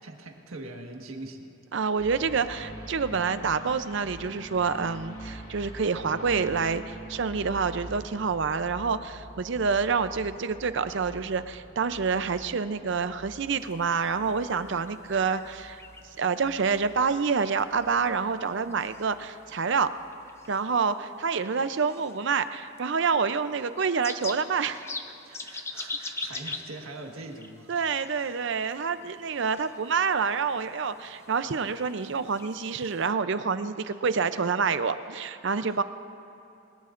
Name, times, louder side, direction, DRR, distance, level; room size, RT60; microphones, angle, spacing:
voice 1, 0.0-1.5 25.2-27.8 28.1-28.9 29.2-29.4 34.7-34.9 35.6-35.8, right 2 dB, 90° right, 2 dB, 1.5 m, -43 dB
voice 2, 1.7-15.8 16.2-19.9 20.5-24.9 27.7-35.8, right 5 dB, 60° right, 12 dB, 0.5 m, -27 dB
sound 1, 2.0-20.4 20.7-20.8, right 1 dB, 30° left, 2.6 m, -46 dB
sound 2, 13.5-33.1, left 3 dB, 15° left, 0.5 m, -45 dB
22.0 x 20.5 x 2.5 m, 2.9 s
head